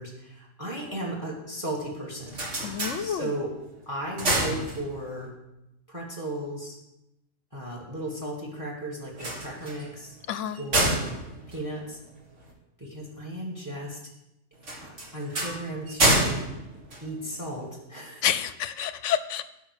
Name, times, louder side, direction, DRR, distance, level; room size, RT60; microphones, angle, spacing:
voice 1, 0.0-2.3 3.0-3.5 3.8-5.3 5.9-6.8 7.5-10.2 10.6-11.2 11.5-12.0 12.8-14.0 14.8-16.4 17.0-18.2, right 1 dB, 15° right, -1 dB, 1.7 m, -35 dB
sound 1, 2.0-3.6 3.9-5.3 9.0-12.5 14.6-17.7, right 1 dB, 60° right, 2.3 m, -28 dB
voice 2, 2.6-3.3 10.3-10.6 18.2-19.5, left 9 dB, 65° left, 13 dB, 0.9 m, -28 dB
13.0 x 5.7 x 6.5 m, 0.90 s
omnidirectional pair, 1.4 m